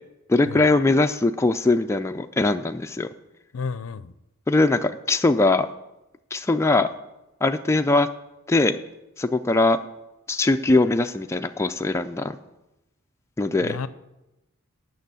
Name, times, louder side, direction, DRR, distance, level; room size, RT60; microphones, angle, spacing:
voice 1, 0.3-3.1 4.5-5.7 6.3-6.9 7.4-8.1 8.5-8.8 9.2-9.8 10.3-12.4 13.4-13.8, left 2 dB, 15° left, 6 dB, 0.3 m, -21 dB
voice 2, 3.5-4.1 13.6-13.9, left 5 dB, 70° left, 16 dB, 0.5 m, -31 dB
9.1 x 6.3 x 8.2 m, 0.96 s
head